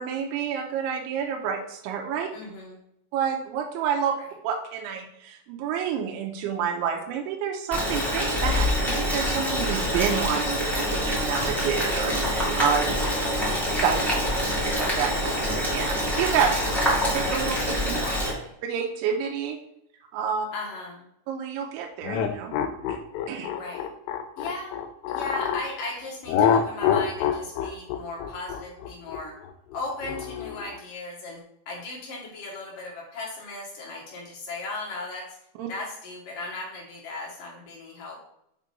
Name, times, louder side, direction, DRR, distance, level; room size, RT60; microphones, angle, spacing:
voice 1, 0.0-2.3 3.1-4.1 4.4-13.0 13.8-16.8 17.1-18.0 18.7-19.6 20.1-20.5 21.3-22.5 22.9-23.0 23.3-23.5 35.6-35.7, right 7 dB, 80° right, 1 dB, 3.0 m, -29 dB
voice 2, 2.3-2.8 13.1-13.4 18.0-18.5 20.5-21.1 23.5-23.9 24.4-24.7 25.1-29.3 29.7-31.4 31.7-35.4 35.7-38.2, left 2 dB, 60° left, -3 dB, 2.5 m, -37 dB
Boiling, 7.7-18.3, equal, ahead, 0.6 m, -26 dB
sound 1, 22.0-25.7 26.3-30.8, left 8 dB, 85° left, 3.2 m, -26 dB
7.5 x 3.7 x 5.3 m, 0.77 s
omnidirectional pair, 5.6 m